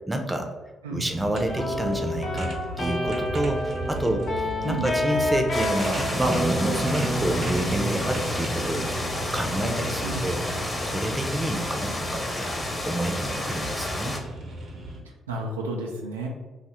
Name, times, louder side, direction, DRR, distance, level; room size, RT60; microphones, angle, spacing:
voice 1, 0.1-0.5 0.9-2.5 2.8-4.3 4.6-8.9 9.3-10.4 10.8-12.5 12.8-14.1, right 1 dB, 15° right, 4 dB, 0.6 m, -28 dB
sound 1, 1.1-15.0, right 1 dB, 55° right, 0.7 m, -35 dB
sound 2, 1.5-15.0, left 1 dB, 55° left, 1.0 m, -32 dB
voice 2, 4.6-5.1 10.0-10.3 15.3-16.3, right 2 dB, 90° right, -1 dB, 0.4 m, -32 dB
sound 3, 5.5-14.2, left 1 dB, 20° left, 0.9 m, -31 dB
2.8 x 2.4 x 4.2 m, 1.2 s
hypercardioid pair, 45°, 0 cm